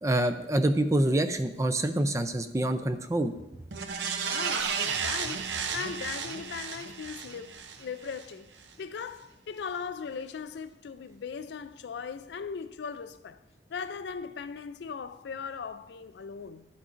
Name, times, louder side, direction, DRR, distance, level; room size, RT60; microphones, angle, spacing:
voice 1, 0.0-3.3, right 1 dB, 15° right, 0.4 m, -26 dB
sound 1, 3.7-8.2 8.6-8.7, right 6 dB, 80° right, 0.7 m, -33 dB
voice 2, 4.1-8.5 8.8-13.4 13.7-16.7, left 6 dB, 70° left, 0.4 m, -39 dB
11.0 x 8.5 x 2.6 m
head